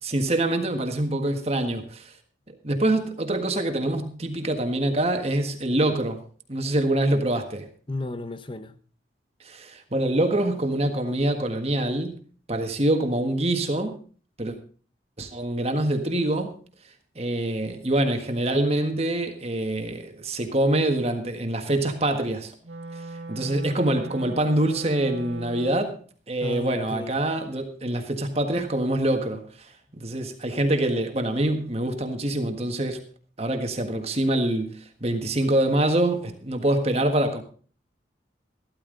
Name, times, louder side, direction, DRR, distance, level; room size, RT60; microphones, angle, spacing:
voice 1, 0.0-2.1 2.6-6.2 6.5-7.7 9.4-12.2 12.5-13.9 14.4-14.6 15.2-16.5 17.1-22.5 23.3-26.0 26.3-33.0 33.4-37.4, right 1 dB, 35° right, 1.6 m, -25 dB
voice 2, 7.9-8.7 26.4-27.2, left 2 dB, 25° left, 0.9 m, -33 dB
Wind instrument woodwind instrument, 22.6-26.0, right 2 dB, 80° right, 2.4 m, -38 dB
14.5 x 13.0 x 3.9 m
head